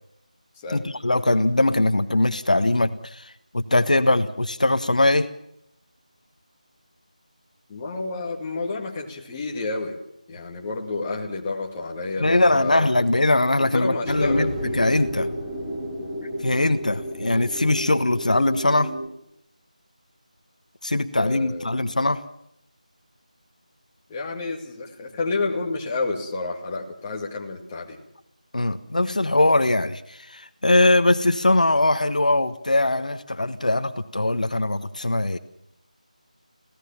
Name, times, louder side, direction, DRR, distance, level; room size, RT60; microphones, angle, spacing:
voice 1, 0.7-5.3 12.2-15.3 16.4-18.9 20.8-22.2 28.5-35.4, left 2 dB, 70° left, 11 dB, 1.4 m, -21 dB
voice 2, 7.7-10.0 10.3-12.9 13.6-14.6 21.1-21.8 24.1-28.0, left 3 dB, 15° left, 0 dB, 2.2 m, -30 dB
sound 1, 14.0-19.1, equal, 5° right, 3.4 m, -31 dB
25.5 x 17.0 x 7.3 m, 0.76 s
figure-of-eight pair, 165°, 4 cm